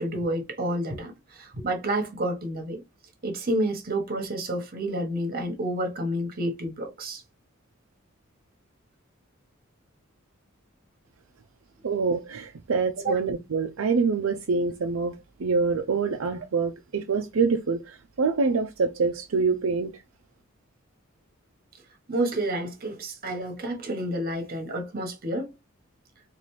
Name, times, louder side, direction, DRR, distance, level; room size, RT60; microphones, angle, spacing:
voice 1, 0.0-2.8 3.2-7.2 13.0-13.2 22.1-25.5, right 1 dB, 45° right, 1.2 m, -29 dB
voice 2, 11.8-20.0, right 4 dB, 70° right, 0.5 m, -26 dB
4.1 x 2.6 x 3.1 m
head